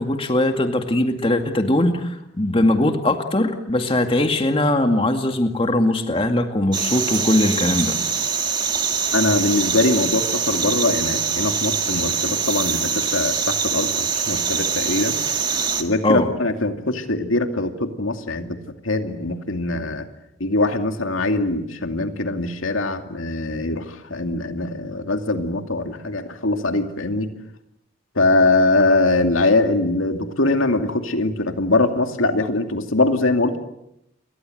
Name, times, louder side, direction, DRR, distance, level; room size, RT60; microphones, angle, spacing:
voice 1, 0.0-8.0 16.0-16.3, left 1 dB, 25° left, 5 dB, 2.1 m, -20 dB
sound 1, 6.7-15.8, right 6 dB, 20° right, 2.0 m, -23 dB
voice 2, 9.1-15.2 15.8-20.1 20.4-27.3 28.1-33.6, left 2 dB, 85° left, 6 dB, 2.5 m, -22 dB
29.5 x 23.5 x 7.9 m, 0.81 s
head